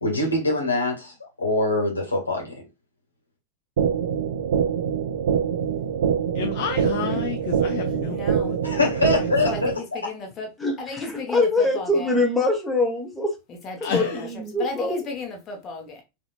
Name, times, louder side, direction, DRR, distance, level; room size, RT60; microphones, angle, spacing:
voice 1, 0.0-2.6 8.6-10.0, left 2 dB, 80° left, 1.4 m, -24 dB
sound 1, 3.8-9.8, right 8 dB, 60° right, 0.4 m, -24 dB
voice 2, 6.3-8.6 13.8-14.3, left 7 dB, 50° left, 0.5 m, -30 dB
voice 3, 8.0-8.6 9.4-10.5 10.8-12.1 13.6-14.3 14.6-16.0, left 3 dB, 30° left, 1.2 m, -34 dB
voice 4, 10.6-13.3 13.8-15.1, left 2 dB, 5° left, 1.0 m, -24 dB
4.0 x 2.8 x 2.4 m
figure-of-eight pair, 90°, 0 cm